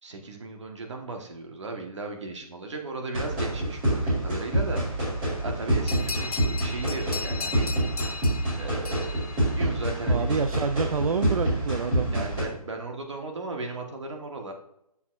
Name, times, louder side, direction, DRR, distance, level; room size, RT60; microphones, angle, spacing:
voice 1, 0.0-4.8 5.4-7.7 8.6-10.4 12.1-14.5, right 3 dB, 50° right, 3 dB, 1.4 m, -36 dB
sound 1, 3.1-12.4, right 1 dB, 15° right, 2.1 m, -27 dB
sound 2, 5.9-10.1, left 5 dB, 75° left, 0.7 m, -37 dB
voice 2, 10.1-12.3, right 5 dB, 65° right, 10 dB, 0.5 m, -28 dB
9.5 x 7.1 x 2.5 m, 0.80 s
hypercardioid pair, 175°, 19 cm